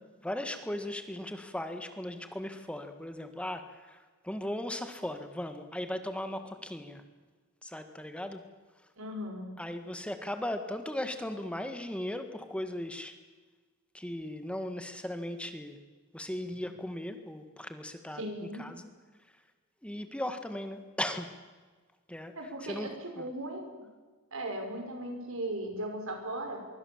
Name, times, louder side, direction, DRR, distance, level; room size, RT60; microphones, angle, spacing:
voice 1, 0.2-7.0 7.6-8.4 9.6-13.2 13.9-15.8 16.1-18.9 19.8-21.3 22.1-22.3 22.6-22.9 23.2-23.3, left 1 dB, 5° left, 7 dB, 1.6 m, -37 dB
voice 2, 9.0-9.5 16.5-16.7 18.1-18.7 22.3-23.7 24.3-26.6, right 1 dB, 70° right, 4 dB, 6.1 m, -37 dB
24.0 x 23.5 x 7.3 m, 1.4 s
head